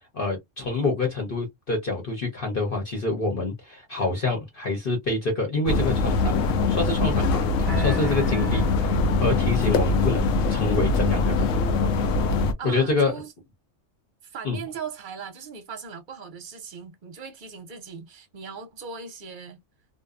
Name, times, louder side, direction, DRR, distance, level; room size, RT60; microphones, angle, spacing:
voice 1, 0.1-6.4 6.7-8.6 9.2-11.5 12.6-13.1 14.4-14.6, left 3 dB, 45° left, 1.0 m, -26 dB
sound 1, 5.7-12.5, left 3 dB, 75° left, 0.9 m, -23 dB
sound 2, 7.7-9.6, right 4 dB, ahead, 1.1 m, -36 dB
voice 2, 8.4-8.8 12.6-13.3 14.2-19.6, right 6 dB, 45° right, 0.9 m, -39 dB
2.6 x 2.2 x 2.3 m
omnidirectional pair, 1.4 m